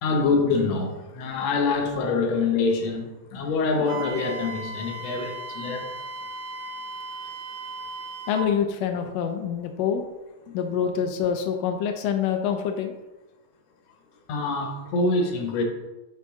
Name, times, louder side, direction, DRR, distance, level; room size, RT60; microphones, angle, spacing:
voice 1, 0.0-5.9 14.3-15.6, left 3 dB, 65° left, 3 dB, 1.9 m, -25 dB
Wind instrument woodwind instrument, 3.9-8.5, right 2 dB, 70° right, 1.9 m, -36 dB
voice 2, 8.3-10.0 10.5-12.9, left 8 dB, 85° left, 4 dB, 1.5 m, -26 dB
11.0 x 3.7 x 3.6 m, 1.1 s
omnidirectional pair, 3.5 m